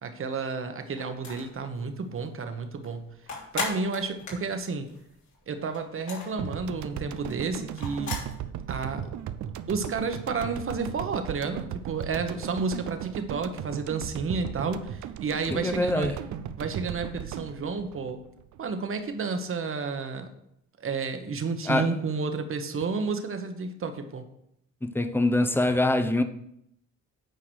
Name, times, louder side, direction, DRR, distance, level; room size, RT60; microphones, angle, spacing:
voice 1, 0.0-3.1 3.5-4.9 5.5-8.2 8.7-9.1 9.7-16.2 16.6-18.2 18.6-20.3 20.8-24.2, right 4 dB, 45° right, 1.2 m, -31 dB
sound 1, 1.0-1.6 2.0-2.1 2.4-5.4 5.6-8.3, left 3 dB, 65° left, 3.1 m, -36 dB
sound 2, 6.4-18.8, right 10 dB, 70° right, 0.6 m, -37 dB
voice 2, 15.5-16.1 21.7-21.9 24.8-26.2, left 1 dB, 5° left, 0.8 m, -24 dB
9.3 x 4.8 x 6.3 m
cardioid pair, 90°, 30 cm